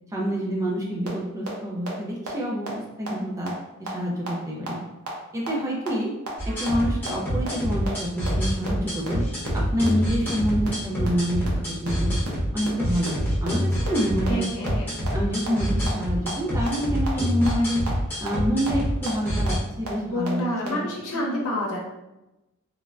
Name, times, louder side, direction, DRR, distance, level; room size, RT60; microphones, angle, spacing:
voice 1, 0.1-4.8 5.3-6.1 6.4-9.2 9.5-12.2 12.5-14.5 15.1-17.8 18.2-20.9 21.1-21.4, equal, 15° right, -2 dB, 0.3 m, -27 dB
sound 1, 1.1-1.2 1.5-1.6 1.9-2.0 2.3-2.4 2.7-2.8 3.1-3.2 3.5-3.6 3.9-4.0 4.3-4.4 4.7-4.8 5.1-5.2 5.5-5.6 5.9-6.0 6.3-6.4 6.7-6.8 7.1-7.2 7.5-7.6 7.9-8.0 8.3-8.4 8.7-8.8 9.1-9.2 9.5-9.6 9.9-10.0 10.2-10.3 10.6-10.7 11.0-11.1 11.4-11.5 11.8-11.9 12.2-12.3 12.7-12.8 13.1-13.2 13.5-13.6 13.9-14.0 14.3-14.4 14.7-14.8 15.1-15.2 15.5-15.6 15.9-16.0 16.3-16.4 16.7-16.8 17.1-17.2 17.5-17.6 17.9-18.0 18.3-18.4 18.7-18.8 19.1-19.2 19.5-19.6 19.9-20.0 20.3-20.4 20.7-20.8, right 3 dB, 75° right, 0.7 m, -32 dB
sound 2, 6.4-19.6, equal, 10° left, 0.9 m, -26 dB
voice 2, 14.3-14.9 20.1-21.8, left 1 dB, 75° left, -2 dB, 0.7 m, -28 dB
3.1 x 2.1 x 2.4 m, 0.98 s
head